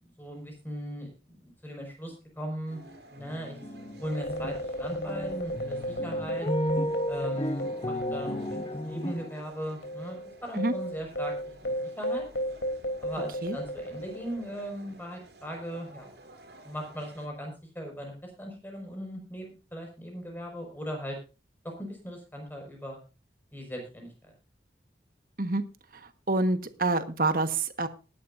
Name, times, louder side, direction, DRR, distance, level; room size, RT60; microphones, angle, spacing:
voice 1, 0.0-2.8 3.1-3.6 4.0-4.5 4.8-6.5 7.1-11.3 11.6-12.2 13.0-16.1 16.6-18.1 18.4-21.2 21.6-23.0 23.5-24.1, equal, 10° left, 2 dB, 5.4 m, -38 dB
sound 1, 2.7-2.9 3.2-4.6 4.9-9.4, equal, 30° left, 0.8 m, -34 dB
sound 2, 2.7-17.3, right 2 dB, 70° right, 4.5 m, -53 dB
sound 3, 4.0-8.8 9.1-9.2 9.8-14.6, equal, 85° left, 3.2 m, -34 dB
voice 2, 25.9-27.9, right 2 dB, 55° right, 10 dB, 1.3 m, -27 dB
19.5 x 11.5 x 2.6 m, 0.31 s
head